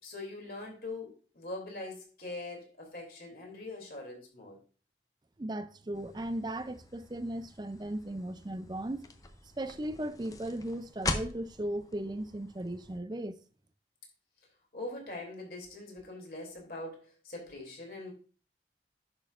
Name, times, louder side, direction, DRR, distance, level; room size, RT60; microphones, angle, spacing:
voice 1, 0.0-4.6 14.7-18.1, left 2 dB, 55° left, 2.9 m, -42 dB
voice 2, 5.4-9.1 9.6-13.4, right 1 dB, 25° right, 0.5 m, -37 dB
sound 1, 5.9-13.0, left 2 dB, 20° left, 0.6 m, -42 dB
10.5 x 6.2 x 2.5 m
head